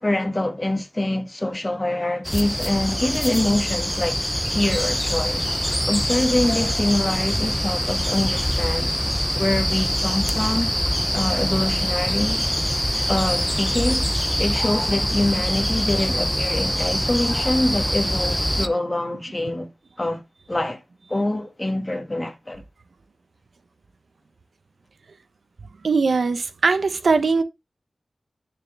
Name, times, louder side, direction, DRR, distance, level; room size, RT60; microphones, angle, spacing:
voice 1, 0.0-4.2 4.5-5.4 5.9-8.9 9.3-10.8 11.1-12.5 13.1-14.1 14.4-19.7 20.0-20.2 20.5-20.8 21.1-22.6, left 1 dB, 20° left, 1.9 m, -25 dB
sound 1, 2.2-18.7, equal, 5° left, 0.8 m, -24 dB
voice 2, 25.8-27.4, right 4 dB, 80° right, 1.0 m, -20 dB
9.6 x 6.5 x 3.4 m
wide cardioid pair, 85°, 0 cm